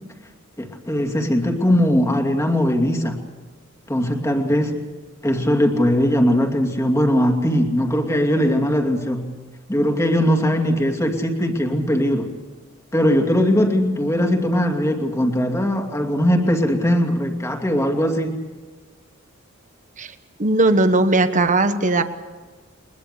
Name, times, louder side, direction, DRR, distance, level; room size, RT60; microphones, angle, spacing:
voice 1, 0.6-3.2 3.9-4.8 5.2-9.3 9.7-12.3 12.9-18.4, equal, 15° left, 3 dB, 2.5 m, -20 dB
voice 2, 20.4-22.0, right 2 dB, 40° right, 10 dB, 1.2 m, -18 dB
21.5 x 21.0 x 6.8 m, 1.3 s
head